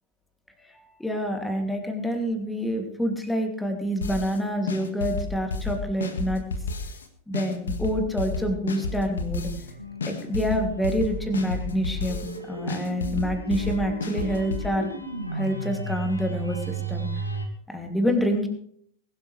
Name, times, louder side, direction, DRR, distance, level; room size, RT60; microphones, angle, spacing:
voice 1, 0.7-6.4 7.3-9.5 10.0-14.9 15.3-17.1 17.7-18.5, equal, 5° left, 4 dB, 2.7 m, -27 dB
sound 1, 4.0-4.4 4.7-7.0 7.3-9.7 10.0-12.4 12.7-14.7, left 3 dB, 70° left, 1.8 m, -31 dB
sound 2, 9.4-17.5, right 3 dB, 90° right, 2.1 m, -35 dB
21.5 x 12.0 x 3.4 m, 0.64 s
figure-of-eight pair, 90°, 0 cm